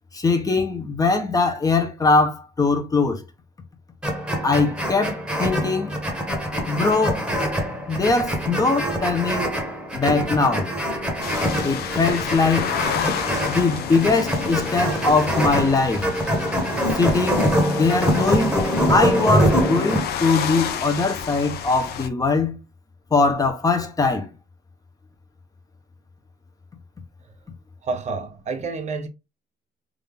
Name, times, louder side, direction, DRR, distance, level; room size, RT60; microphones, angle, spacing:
voice 1, 0.1-3.2 4.4-5.9 6.7-7.2 7.9-9.5 9.9-10.7 11.6-12.7 13.4-16.1 16.9-17.5 17.8-18.6 18.9-22.6 23.1-24.3, left 3 dB, 20° left, 0.9 m, -21 dB
sound 1, 4.0-20.0, equal, 5° right, 1.2 m, -24 dB
sound 2, 11.2-22.1, left 8 dB, 70° left, 0.6 m, -31 dB
voice 2, 27.8-29.1, right 4 dB, 45° right, 0.7 m, -29 dB
3.7 x 2.7 x 3.5 m
cardioid pair, 110°, 17 cm